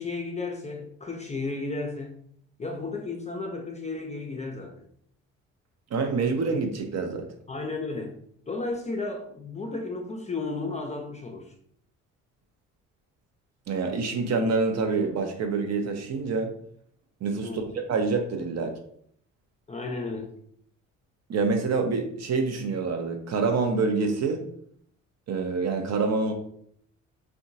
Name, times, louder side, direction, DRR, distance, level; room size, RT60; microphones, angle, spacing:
voice 1, 0.0-2.2 2.6-4.7 7.5-8.2 8.5-11.5 17.4-17.6 19.7-20.3, left 3 dB, 20° left, 2 dB, 0.5 m, -33 dB
voice 2, 5.9-7.3 13.7-16.5 17.2-17.6 17.9-18.7 21.3-24.5 25.3-26.3, right 4 dB, 45° right, 4 dB, 0.7 m, -26 dB
3.6 x 2.3 x 2.6 m, 0.65 s
hypercardioid pair, 50°, 39 cm